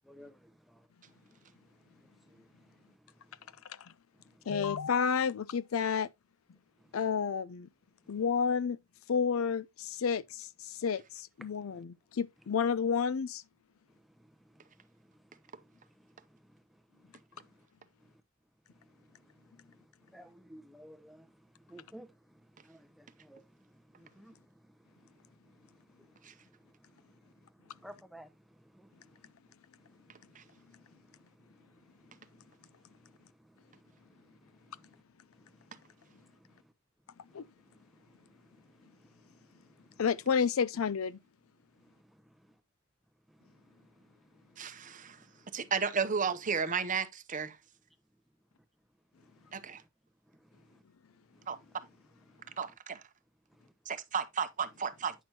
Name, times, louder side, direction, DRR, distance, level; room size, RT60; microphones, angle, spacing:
voice 1, 0.0-3.6 4.1-4.5 6.8-7.0 8.0-8.2 11.4-11.8 13.9-17.6 18.1-18.2 18.7-35.0 35.3-36.7 37.3-40.0 41.8-42.3 43.3-45.6 49.2-49.6 50.3-50.8 51.3-51.8 52.3-52.6 53.5-53.7, equal, ahead, 0.7 m, -60 dB
voice 2, 4.5-6.1 6.9-7.7 8.1-8.8 9.1-13.4 37.3-37.4 40.0-41.2, left 6 dB, 75° left, 0.5 m, -30 dB
voice 3, 44.6-45.2 45.5-47.6 51.5-51.6 52.6-53.0 53.9-55.1, right 6 dB, 40° right, 0.8 m, -33 dB
9.2 x 6.1 x 2.8 m
head